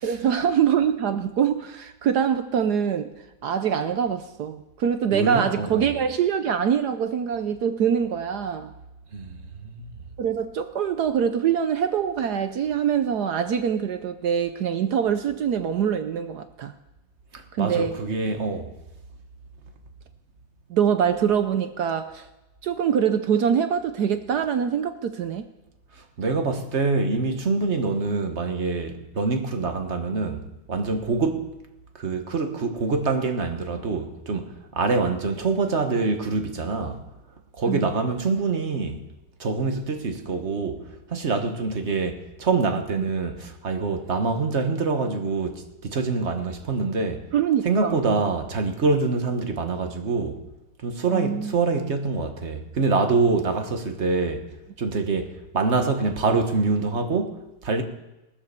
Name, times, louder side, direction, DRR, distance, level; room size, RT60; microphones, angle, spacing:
voice 1, 0.0-3.1 3.4-8.7 10.2-16.7 17.5-18.0 20.7-22.2 22.6-25.4 37.7-37.8 43.0-43.1 47.3-48.2 51.1-51.5, right 8 dB, 65° right, 1.1 m, -24 dB
voice 2, 5.1-5.9 9.1-9.9 17.3-18.7 26.0-31.5 32.0-37.0 37.6-39.0 39.4-47.2 47.6-50.4 50.8-54.5 54.8-57.8, right 4 dB, 40° right, 1.3 m, -25 dB
19.0 x 7.5 x 6.8 m
omnidirectional pair, 2.2 m